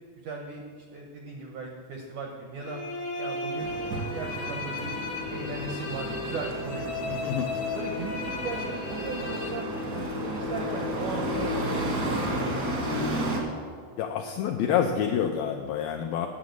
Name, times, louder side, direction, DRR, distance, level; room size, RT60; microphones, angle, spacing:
voice 1, 0.2-2.8 3.2-4.9 5.3-7.4 7.7-9.7 9.9-12.3, right 4 dB, 80° right, 1 dB, 1.7 m, -37 dB
sound 1, 2.6-10.3, left 2 dB, 70° left, 2.0 m, -35 dB
sound 2, 3.6-13.4, equal, 65° right, 1.0 m, -32 dB
voice 2, 14.0-16.3, left 8 dB, 85° left, 4 dB, 2.0 m, -27 dB
9.5 x 7.2 x 7.9 m, 2.1 s
omnidirectional pair, 4.7 m